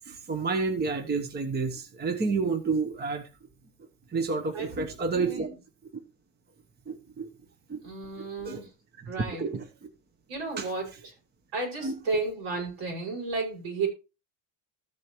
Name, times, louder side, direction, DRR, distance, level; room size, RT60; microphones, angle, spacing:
voice 1, 0.1-3.2 4.1-5.5 6.9-7.3 7.7-7.8 8.2-8.6 9.0-9.1 9.4-9.9 10.6-10.7 11.8-12.0, right 4 dB, 20° right, 8 dB, 0.9 m, -30 dB
voice 2, 4.5-4.9 5.1-5.5 7.8-8.7 9.1-9.4 10.3-11.1 11.5-13.9, right 3 dB, 70° right, 0 dB, 6.2 m, -33 dB
14.0 x 7.2 x 3.0 m, 0.29 s
cardioid pair, 135°, 50 cm